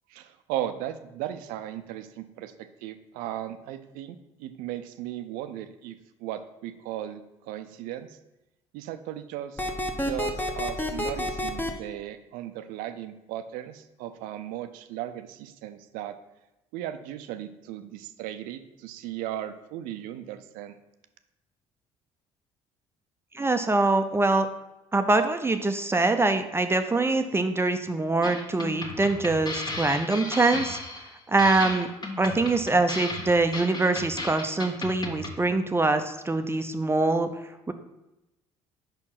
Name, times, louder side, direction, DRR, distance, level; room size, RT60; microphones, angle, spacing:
voice 1, 0.1-5.9 6.2-8.1 8.7-9.6 10.0-16.2 16.7-20.7, right 12 dB, 75° right, 10 dB, 0.5 m, -36 dB
sound 1, 9.6-11.7, left 1 dB, 15° left, 1.0 m, -28 dB
voice 2, 23.3-24.5 24.9-30.8 31.3-31.9 32.2-37.3 37.7-37.8, right 2 dB, 15° right, 7 dB, 0.6 m, -24 dB
sound 2, 28.2-35.4, left 2 dB, 30° left, 1.5 m, -35 dB
5.2 x 4.5 x 5.8 m, 0.95 s
hypercardioid pair, 60°, 14 cm